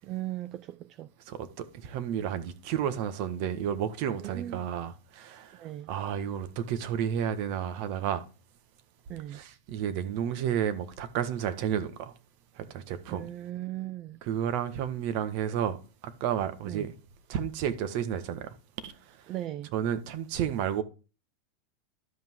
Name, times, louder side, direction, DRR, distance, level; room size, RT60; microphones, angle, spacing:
voice 1, 0.0-1.1 4.2-4.7 5.5-5.9 9.1-9.4 13.1-14.2 16.6-16.9 19.3-19.7, right 14 dB, 40° right, 0.5 m, -38 dB
voice 2, 1.3-5.6 5.9-8.2 9.3-12.1 12.6-13.3 14.2-15.8 16.0-16.9 17.3-18.5 18.8-19.2 19.7-20.8, right 9 dB, 55° right, 1.5 m, -31 dB
12.0 x 5.8 x 4.7 m
supercardioid pair, 125°, 0 cm